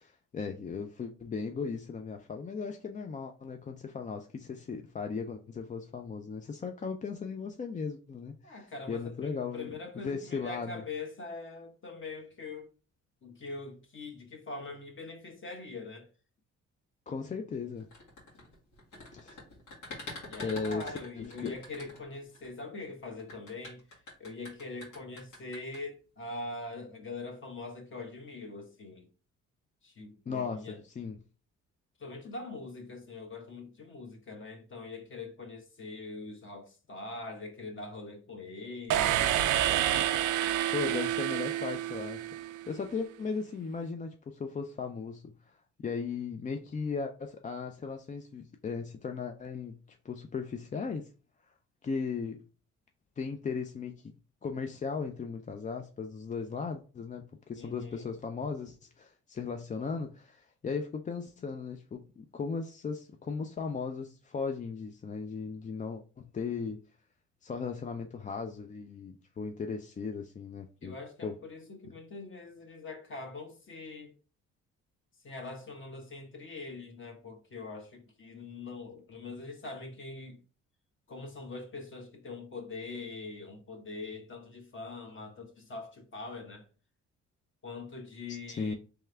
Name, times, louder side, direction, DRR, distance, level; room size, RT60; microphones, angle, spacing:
voice 1, 0.0-10.8 17.1-17.9 19.1-19.4 20.4-21.5 30.3-31.2 40.7-51.1 51.8-52.4 53.2-54.1 54.4-66.8 67.4-70.9 71.2-71.3 88.6-88.7, left 5 dB, 25° left, 0.4 m, -37 dB
voice 2, 8.4-12.7 13.2-16.1 20.3-23.8 24.2-29.1 29.8-30.8 32.0-39.4 57.6-58.1 70.8-74.1 75.2-80.4 81.1-86.7 87.6-88.8, left 3 dB, 40° left, 1.2 m, -43 dB
sound 1, 17.8-22.5 23.2-25.8, left 2 dB, 80° left, 2.1 m, -45 dB
sound 2, 38.9-42.7, right 12 dB, 75° right, 0.5 m, -28 dB
3.4 x 3.3 x 3.3 m
cardioid pair, 90°, 30 cm